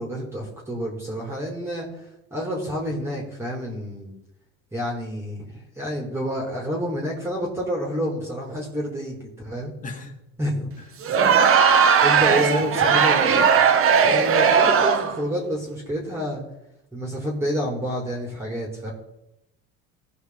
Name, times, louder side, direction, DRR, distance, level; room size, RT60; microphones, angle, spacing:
voice 1, 0.0-4.1 4.7-9.7 10.4-10.7 11.1-11.4 12.0-13.2 14.0-16.4 16.9-18.9, equal, 10° right, -3 dB, 3.0 m, -29 dB
voice 2, 9.8-10.1 12.4-13.5, left 3 dB, 25° left, 2 dB, 2.5 m, -33 dB
Crowd, 11.0-15.2, right 6 dB, 45° right, 1.2 m, -18 dB
16.5 x 5.8 x 4.1 m, 0.87 s
supercardioid pair, 100°, 30 cm